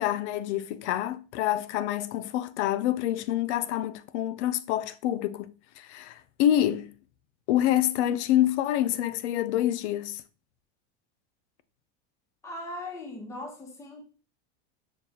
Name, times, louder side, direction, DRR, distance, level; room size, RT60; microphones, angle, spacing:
voice 1, 0.0-6.9 7.5-10.2, left 12 dB, 80° left, 0.5 m, -27 dB
voice 2, 12.4-14.0, left 1 dB, 10° left, 0.8 m, -39 dB
6.4 x 2.3 x 2.8 m
supercardioid pair, 120°, 34 cm